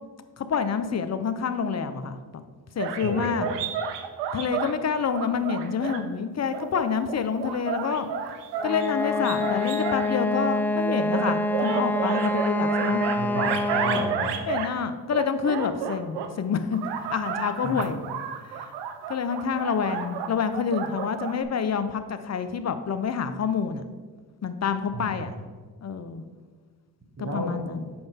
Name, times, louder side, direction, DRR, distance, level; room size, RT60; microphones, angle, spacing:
voice 1, 0.4-2.4 2.8-3.5 4.3-8.1 8.6-13.0 14.4-16.8 17.1-18.0 18.4-18.7 19.1-23.9 24.4-25.3 25.8-26.2 27.2-27.9, left 6 dB, 40° left, 11 dB, 0.7 m, -28 dB
sound 1, 2.8-4.7 5.1-6.0 6.5-10.1 10.9-14.8 15.1-16.3 16.7-21.4, right 7 dB, 90° right, 0.6 m, -31 dB
voice 2, 3.0-3.5 13.2-14.3 17.6-17.7 24.9-25.1 27.2-27.6, right 1 dB, 40° right, 0 dB, 1.7 m, -30 dB
Wind instrument woodwind instrument, 8.6-14.3, left 2 dB, 5° left, 0.3 m, -26 dB
7.8 x 5.2 x 3.6 m, 1.4 s
supercardioid pair, 50°, 41 cm